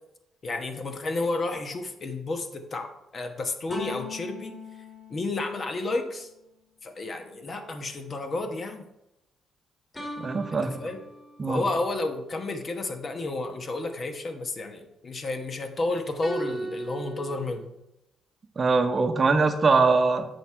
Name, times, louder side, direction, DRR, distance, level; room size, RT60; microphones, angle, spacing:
voice 1, 0.4-4.6 5.1-6.3 6.8-8.8 10.8-11.0 11.5-17.7, left 2 dB, 40° left, 6 dB, 1.0 m, -31 dB
sound 1, 3.7-6.2 9.9-11.8 16.2-17.6, equal, 15° left, 1.8 m, -39 dB
voice 2, 10.2-10.8 11.4-11.6 18.6-20.3, right 4 dB, 35° right, 7 dB, 0.8 m, -22 dB
8.0 x 4.8 x 4.4 m, 0.90 s
cardioid pair, 90°, 0 cm